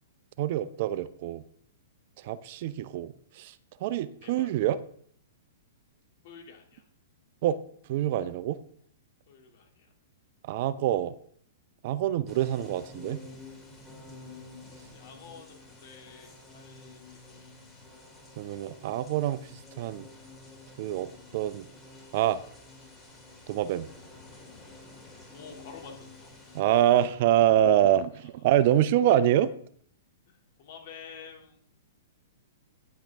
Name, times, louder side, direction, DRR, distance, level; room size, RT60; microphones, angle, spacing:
voice 1, 0.4-1.4 2.2-3.5 3.8-4.8 7.4-7.6 7.9-8.6 10.5-11.1 11.8-13.2 18.4-19.4 19.8-20.1 20.8-21.6 22.1-22.4 23.5-23.9 26.5-29.5, right 11 dB, 50° right, 15 dB, 0.6 m, -25 dB
voice 2, 4.2-4.6 6.2-6.8 9.3-9.9 14.9-17.5 25.3-26.3 26.6-27.1 28.1-28.3 29.1-29.2 30.3-31.6, left 6 dB, 55° left, 2 dB, 2.5 m, -49 dB
sound 1, 12.2-26.6, left 3 dB, 15° left, 3.1 m, -50 dB
10.5 x 7.6 x 3.5 m, 0.62 s
hypercardioid pair, 120°, 0 cm